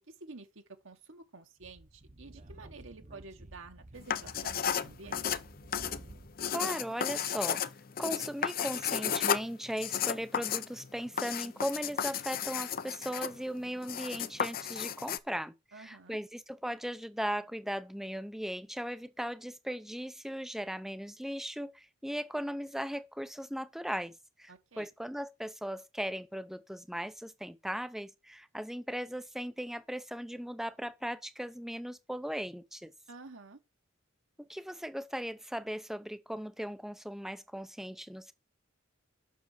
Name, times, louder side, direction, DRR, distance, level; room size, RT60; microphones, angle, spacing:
voice 1, 0.0-5.4 15.7-16.2 24.5-24.9 33.1-33.6, right 3 dB, 70° right, 1.6 m, -50 dB
Speech / Wind, 1.6-6.5, right 1 dB, 35° right, 1.0 m, -52 dB
sound 1, 4.0-15.2, left 8 dB, 45° left, 0.6 m, -33 dB
voice 2, 6.5-7.6 8.0-32.9 34.4-38.3, equal, ahead, 0.6 m, -38 dB
7.3 x 6.3 x 7.4 m
head